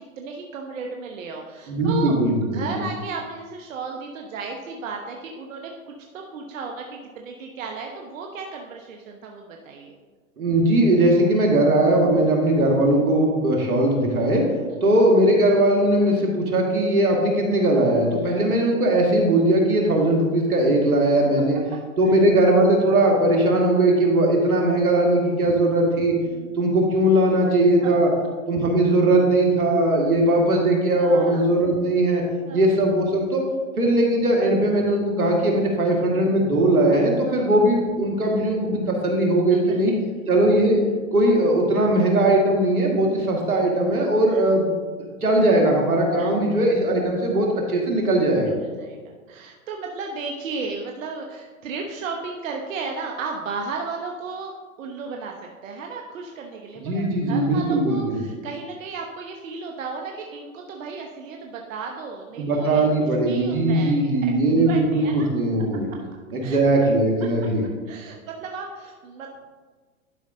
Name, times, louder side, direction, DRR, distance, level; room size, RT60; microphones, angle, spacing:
voice 1, 0.0-9.9 14.7-14.8 18.2-18.3 25.4-25.6 26.2-26.6 27.8-27.9 30.9-31.5 32.4-32.7 37.3-37.5 39.7-40.1 44.3-44.4 46.1-46.3 48.6-54.5 54.8-64.3 64.7-65.3 65.9-66.6 67.9-69.4, right 4 dB, 65° right, 2 dB, 1.0 m, -35 dB
voice 2, 1.7-2.8 10.4-14.5 14.8-21.6 22.0-26.1 26.6-28.1 28.5-32.2 32.5-33.4 33.8-39.9 40.3-40.8 41.1-44.6 45.2-48.6 56.8-58.2 62.4-65.9 66.3-67.6, right 1 dB, 90° right, 0 dB, 2.1 m, -19 dB
11.5 x 5.3 x 3.8 m, 1.5 s
hypercardioid pair, 125°, 42 cm